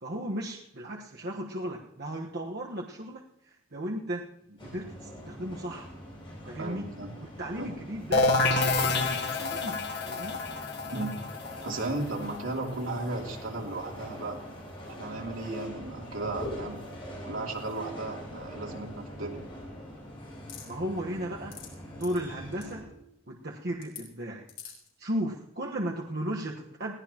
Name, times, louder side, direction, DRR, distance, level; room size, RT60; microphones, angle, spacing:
voice 1, 0.0-4.3 4.6-5.9 6.4-6.9 7.2-10.4 20.7-21.6 21.9-22.9 23.3-24.5 25.0-26.9, right 1 dB, 50° right, -1 dB, 1.3 m, -35 dB
sound 1, 4.6-22.8, equal, 25° left, 7.4 m, -43 dB
voice 2, 6.6-7.1 7.6-7.7 10.9-11.1 11.6-14.4 14.9-16.8 17.2-19.4, right 2 dB, 80° right, -1 dB, 3.2 m, -35 dB
sound 2, 8.1-13.7, left 3 dB, 55° left, 1.8 m, -28 dB
sound 3, 20.5-20.7 21.3-21.7 22.0-22.2 22.5-22.7 23.8-24.0 24.5-24.9, left 9 dB, 70° left, 4.6 m, -43 dB
21.0 x 16.5 x 3.0 m, 0.80 s
head